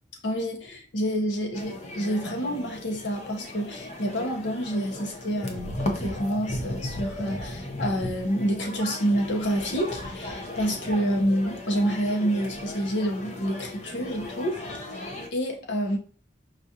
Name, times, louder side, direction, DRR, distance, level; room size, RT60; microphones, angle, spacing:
voice 1, 0.2-14.9 15.3-16.0, equal, 75° left, 0.8 m, -28 dB
sound 1, 1.5-15.3, left 1 dB, 40° left, 0.6 m, -36 dB
4.8 x 2.4 x 2.7 m
head